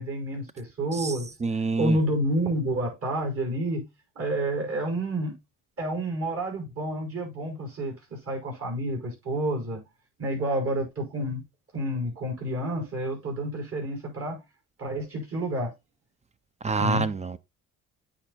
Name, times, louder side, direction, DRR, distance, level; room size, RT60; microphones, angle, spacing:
voice 1, 0.0-1.3 1.8-3.9 4.2-5.4 5.8-9.8 10.2-11.4 11.7-14.4 14.8-15.7 16.8-17.2, right 1 dB, 50° right, 5.7 m, -29 dB
voice 2, 1.4-2.0 16.6-17.4, right 4 dB, 25° right, 0.6 m, -26 dB
8.7 x 4.5 x 3.9 m
cardioid pair, 90°, 30 cm